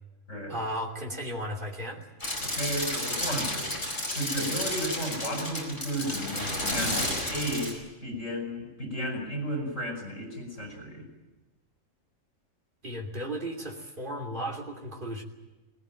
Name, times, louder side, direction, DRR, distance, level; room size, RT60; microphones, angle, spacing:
voice 1, 0.5-2.1 12.8-15.2, equal, 40° right, 0 dB, 3.1 m, -35 dB
sound 1, 2.2-7.7, left 1 dB, 40° left, 5.6 m, -32 dB
voice 2, 2.4-3.7 4.2-11.0, right 1 dB, 75° left, 1 dB, 5.8 m, -34 dB
20.0 x 19.0 x 9.1 m, 1.1 s
omnidirectional pair, 1.3 m